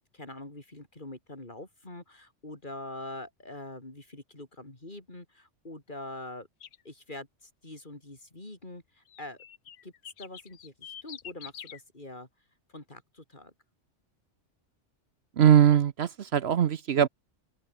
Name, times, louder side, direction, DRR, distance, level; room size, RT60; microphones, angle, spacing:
voice 1, 0.0-6.5 6.8-9.4 9.8-9.9 10.2-12.3 12.7-13.5, left 2 dB, 40° left, 4.2 m, -44 dB
sound 1, 6.6-6.8 9.1-11.8, left 9 dB, 85° left, 1.3 m, -45 dB
voice 2, 15.4-17.1, right 9 dB, 65° right, 1.0 m, -21 dB
open air
omnidirectional pair, 1.3 m